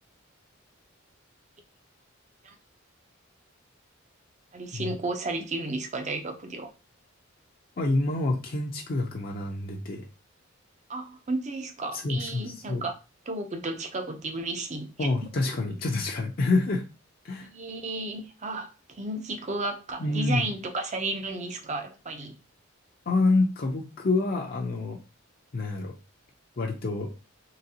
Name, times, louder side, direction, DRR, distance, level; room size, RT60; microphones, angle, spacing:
voice 1, 4.5-6.7 10.9-12.9 13.3-15.1 17.4-22.3, right 2 dB, 35° right, 0.5 m, -33 dB
voice 2, 7.8-10.1 11.9-12.8 15.0-16.8 17.2-17.5 20.0-20.5 23.1-25.0 25.5-25.9 26.6-27.1, left 2 dB, 45° left, 0.5 m, -27 dB
3.8 x 3.3 x 2.7 m
head